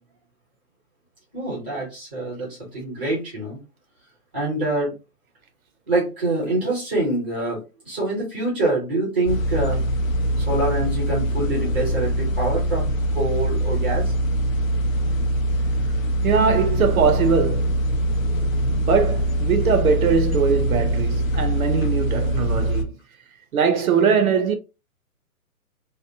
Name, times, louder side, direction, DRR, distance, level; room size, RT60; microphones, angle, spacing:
voice 1, 1.3-3.6 4.3-4.9 5.9-7.6 7.8-9.8 10.4-14.1, right 2 dB, 5° right, 0.5 m, -25 dB
sound 1, 9.3-22.8, right 1 dB, 60° left, 0.6 m, -23 dB
voice 2, 16.2-17.8 18.7-22.9 23.5-24.6, right 6 dB, 70° right, 0.5 m, -21 dB
2.7 x 2.0 x 2.5 m
hypercardioid pair, 150°, 45 cm